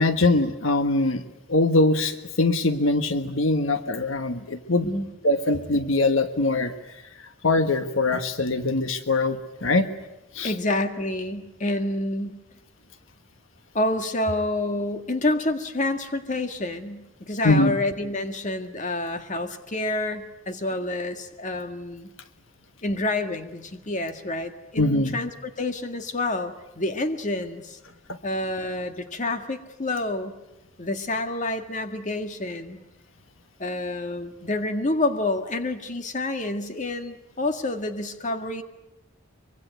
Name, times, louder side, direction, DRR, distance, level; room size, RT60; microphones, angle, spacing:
voice 1, 0.0-4.9 5.2-6.8 7.4-9.9 10.3-10.5 17.4-17.7 24.8-25.1 28.1-28.2, left 2 dB, 80° left, 9 dB, 1.5 m, -22 dB
voice 2, 10.4-12.4 13.7-22.1 22.8-27.8 28.2-30.3 30.8-32.8 33.6-38.6, left 2 dB, 40° left, 7 dB, 1.8 m, -28 dB
24.5 x 23.5 x 9.3 m, 1.0 s
head